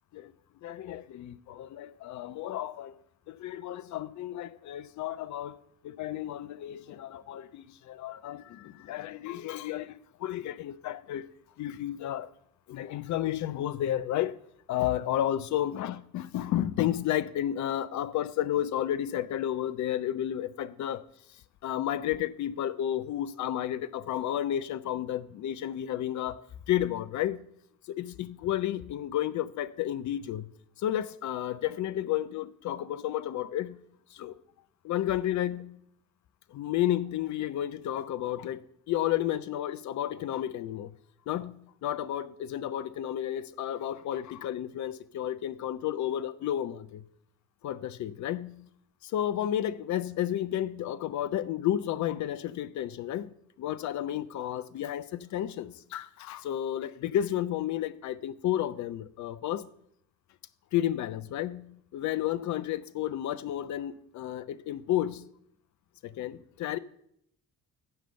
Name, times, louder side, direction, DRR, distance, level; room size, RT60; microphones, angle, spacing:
voice 1, 0.6-2.9 3.3-5.6 5.8-11.3 11.6-12.3 12.7-14.4 14.7-21.0 21.6-27.5 27.9-30.5 30.8-33.8 34.1-34.4 34.8-35.8 36.5-41.0 41.3-47.0 47.6-48.6 49.0-59.7 60.7-65.3 66.0-66.8, left 12 dB, 40° left, 0.5 m, -32 dB
11.0 x 5.1 x 6.6 m
figure-of-eight pair, 45°, 45 cm